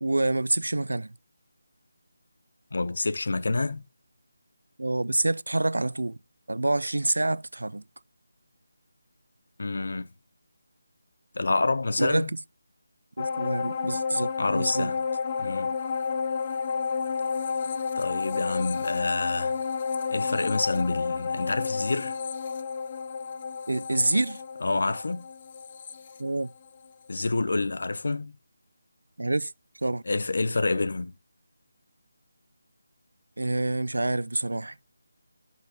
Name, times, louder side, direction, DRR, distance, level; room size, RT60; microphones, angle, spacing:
voice 1, 0.0-1.1 4.8-6.2 6.5-7.8 12.0-12.3 13.2-14.9 23.7-24.4 26.2-26.5 29.2-29.5 29.8-30.0 33.4-34.7, right 2 dB, 75° right, 0.4 m, -27 dB
voice 2, 2.7-3.8 9.6-10.1 11.3-12.3 14.4-15.0 15.4-15.7 18.0-19.6 20.1-22.2 24.6-25.3 27.1-28.4 30.1-31.1, left 3 dB, 60° left, 0.9 m, -28 dB
sound 1, 13.2-26.9 27.3-27.4, left 5 dB, 30° left, 0.7 m, -31 dB
11.5 x 5.7 x 3.7 m
figure-of-eight pair, 160°, 0 cm